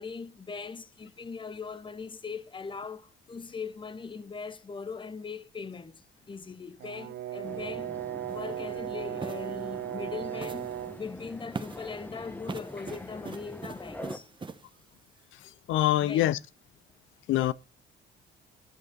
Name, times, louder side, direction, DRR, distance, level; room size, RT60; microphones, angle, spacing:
voice 1, 0.0-6.0 6.3-8.0 8.3-14.3 16.0-16.4, left 5 dB, 25° left, 0.7 m, -40 dB
Brass instrument, 6.8-11.0, right 12 dB, 70° right, 0.6 m, -36 dB
sound 1, 7.4-14.2, left 1 dB, 10° left, 1.1 m, -45 dB
sound 2, 8.3-8.4 9.2-9.5 10.4-10.8 11.5-11.9 12.5-14.6, right 4 dB, 25° right, 0.9 m, -41 dB
voice 2, 15.7-16.4 17.3-17.5, left 14 dB, 80° left, 0.4 m, -24 dB
11.0 x 5.0 x 5.2 m
cardioid pair, 90°, 20 cm